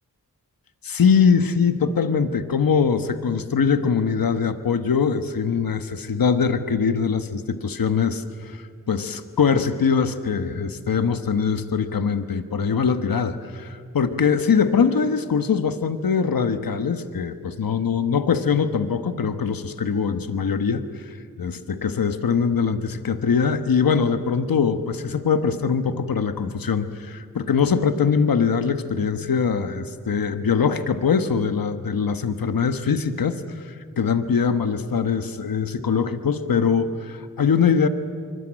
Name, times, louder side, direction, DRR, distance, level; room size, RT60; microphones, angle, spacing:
voice 1, 0.8-37.9, left 6 dB, 75° left, 10 dB, 1.3 m, -22 dB
26.0 x 24.5 x 8.9 m, 2.2 s
cardioid pair, 60°, 35 cm